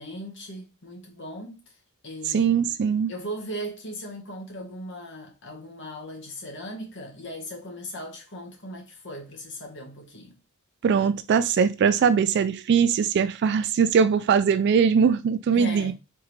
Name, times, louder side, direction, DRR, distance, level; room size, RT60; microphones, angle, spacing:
voice 1, 0.0-1.6 2.0-2.7 3.1-10.4 15.5-15.9, equal, 60° left, 1.3 m, -38 dB
voice 2, 2.3-3.1 10.8-15.9, right 6 dB, 55° right, 0.3 m, -21 dB
3.7 x 3.5 x 3.1 m
head